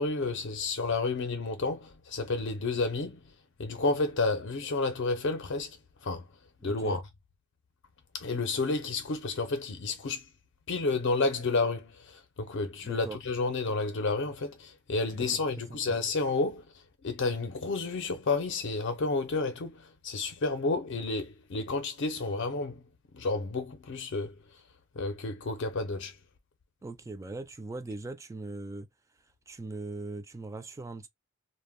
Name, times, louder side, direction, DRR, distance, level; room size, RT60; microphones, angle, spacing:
voice 1, 0.0-3.2 3.6-5.8 6.0-6.2 6.6-7.0 8.1-10.2 10.7-16.7 17.0-22.8 23.1-24.4 25.0-26.2, left 3 dB, 60° left, 0.5 m, -30 dB
voice 2, 6.6-7.0 12.8-13.2 15.1-15.4 15.7-16.0 26.8-28.9 29.5-31.1, right 2 dB, 15° right, 0.3 m, -40 dB
2.1 x 2.1 x 3.5 m
head